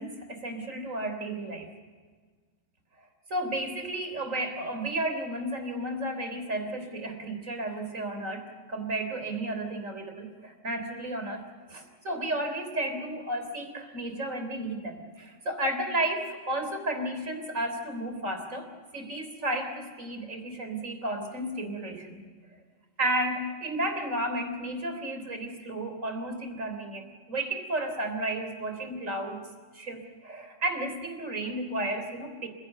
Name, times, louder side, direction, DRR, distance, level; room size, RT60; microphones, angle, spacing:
voice 1, 0.0-1.7 3.3-11.4 11.7-22.3 23.0-29.4 29.7-32.5, right 1 dB, 85° right, 6 dB, 4.0 m, -33 dB
28.5 x 16.5 x 8.0 m, 1.5 s
omnidirectional pair, 1.3 m